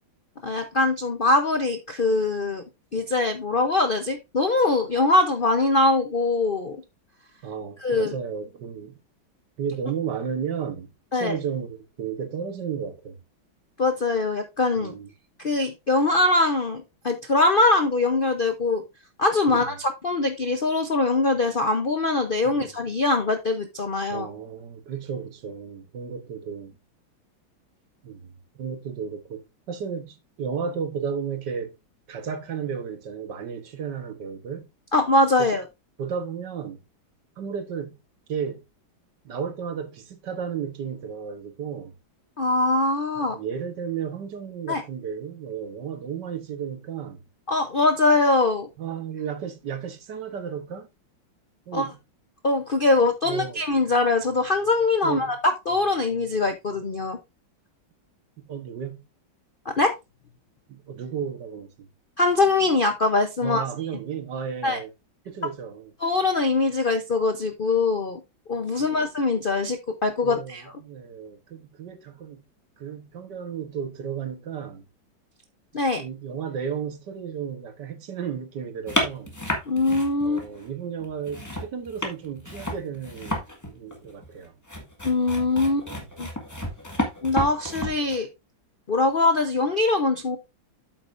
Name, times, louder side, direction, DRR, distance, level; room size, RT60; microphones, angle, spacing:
voice 1, 0.4-2.6 2.9-6.8 7.8-8.1 11.1-11.4 13.8-14.9 15.4-18.8 19.2-24.3 34.9-35.6 42.4-43.4 44.7-44.8 47.5-48.7 51.7-51.9 52.4-57.2 59.6-59.9 62.2-63.6 64.6-64.8 66.0-68.2 68.5-70.6 75.7-76.0 79.7-80.4 85.0-85.9 86.2-86.3 87.2-88.3 88.9-90.4, left 2 dB, 50° left, 0.6 m, -22 dB
voice 2, 7.4-9.0 9.6-13.2 14.8-15.1 19.5-19.7 22.4-22.6 24.1-26.8 28.0-31.7 32.1-34.7 35.4-35.5 36.0-36.8 37.4-38.0 38.3-38.6 39.2-41.9 43.1-47.2 48.8-50.9 51.7-52.0 53.2-53.6 55.0-55.4 58.4-59.0 60.7-61.9 63.4-64.9 65.2-65.9 68.8-69.0 70.2-72.4 72.8-74.8 76.0-79.3 80.2-84.5 85.9-86.0, right 7 dB, 65° right, 1.7 m, -33 dB
sound 1, 78.9-80.7 81.0-88.2, left 1 dB, 10° left, 1.6 m, -31 dB
8.6 x 8.1 x 2.6 m
omnidirectional pair, 2.1 m